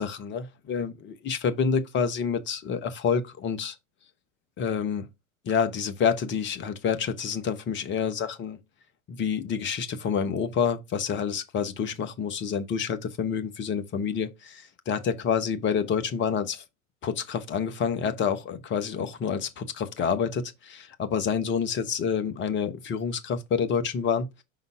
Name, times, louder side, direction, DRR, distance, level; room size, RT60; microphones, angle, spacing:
voice 1, 0.0-3.7 4.6-5.1 5.5-8.6 9.1-16.6 17.0-24.3, left 6 dB, 25° left, 0.9 m, -28 dB
5.2 x 3.9 x 4.6 m
figure-of-eight pair, 85°, 41 cm